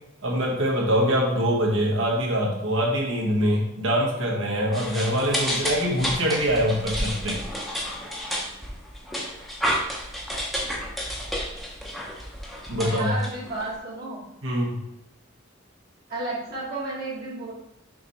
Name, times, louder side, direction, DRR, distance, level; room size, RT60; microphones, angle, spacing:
voice 1, 0.2-7.4 12.7-13.1 14.4-14.8, equal, 70° right, -2 dB, 1.7 m, -24 dB
sound 1, 4.7-13.7, equal, ahead, 0.9 m, -31 dB
voice 2, 12.8-14.2 16.1-17.5, right 2 dB, 50° right, -7 dB, 1.7 m, -32 dB
6.4 x 3.3 x 4.5 m, 0.84 s
head